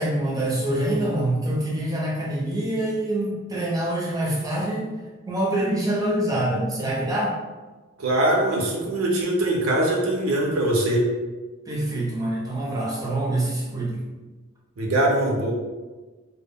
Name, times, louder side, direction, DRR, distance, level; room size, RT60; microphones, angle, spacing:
voice 1, 0.0-5.0 5.3-7.4 11.7-14.1, right 1 dB, 15° right, -5 dB, 0.5 m, -25 dB
voice 2, 8.0-11.0 14.8-15.5, right 1 dB, 75° right, -2 dB, 0.5 m, -22 dB
2.1 x 2.1 x 3.4 m, 1.3 s
head